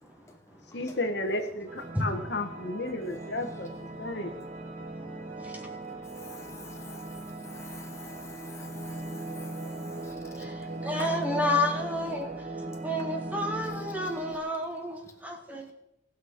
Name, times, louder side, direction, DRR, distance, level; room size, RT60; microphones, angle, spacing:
voice 1, 0.7-3.7 4.0-4.3, left 2 dB, 60° left, 5 dB, 1.2 m, -32 dB
sound 1, 1.7-14.4, right 2 dB, 40° right, 1.4 m, -39 dB
voice 2, 6.2-10.1 11.0-11.1 14.0-14.1, left 3 dB, 15° left, 2 dB, 1.4 m, -48 dB
voice 3, 10.8-12.3 12.8-15.7, left 1 dB, 10° right, 2 dB, 1.3 m, -30 dB
18.5 x 6.2 x 5.0 m, 0.89 s
head